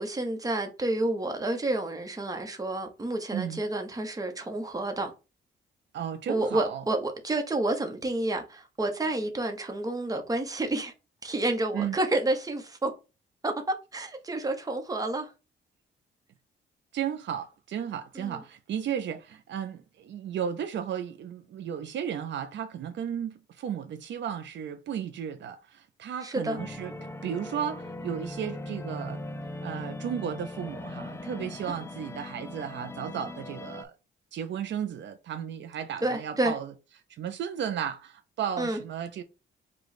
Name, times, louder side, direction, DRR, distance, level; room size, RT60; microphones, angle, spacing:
voice 1, 0.0-5.1 6.3-10.9 11.2-12.9 13.4-13.5 13.9-15.3 18.1-18.4 26.2-26.6 36.0-36.5 38.6-38.8, right 2 dB, 20° right, 0.9 m, -29 dB
voice 2, 5.9-6.8 11.7-12.0 16.9-26.9 27.2-29.2 29.6-33.9 34.3-36.7 37.1-39.2, right 8 dB, 70° right, 0.5 m, -34 dB
sound 1, 26.6-33.8, left 1 dB, 15° left, 0.4 m, -39 dB
4.9 x 2.3 x 4.1 m
cardioid pair, 110°, 20 cm